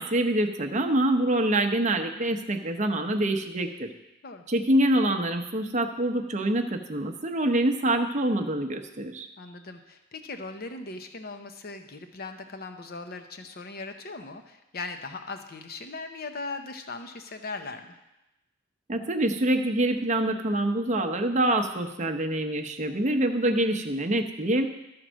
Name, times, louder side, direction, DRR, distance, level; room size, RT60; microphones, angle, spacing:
voice 1, 0.0-3.9 4.5-9.3 18.9-24.7, right 1 dB, 35° right, 5 dB, 0.7 m, -25 dB
voice 2, 9.4-18.0, left 3 dB, 50° left, 7 dB, 0.8 m, -39 dB
13.0 x 4.5 x 6.2 m, 0.95 s
head